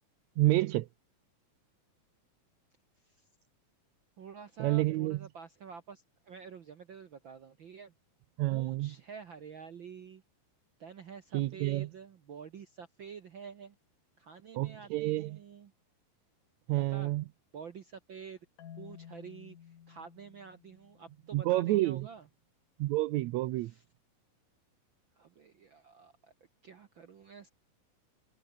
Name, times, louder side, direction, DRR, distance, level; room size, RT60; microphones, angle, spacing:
voice 1, 0.4-0.9 4.6-5.2 8.4-8.9 11.3-11.9 14.5-15.4 16.7-17.2 21.3-22.1 22.8-23.7, right 17 dB, 90° right, 1.6 m, -29 dB
voice 2, 4.2-7.9 8.5-10.2 10.8-13.8 14.2-15.7 16.7-17.1 17.5-18.4 18.7-22.3 23.6-23.8 25.1-26.3 26.6-27.5, right 6 dB, 65° right, 1.2 m, -49 dB
Marimba xylophone, 18.6-21.6, left 9 dB, 65° left, 3.5 m, -53 dB
omnidirectional pair, 4.0 m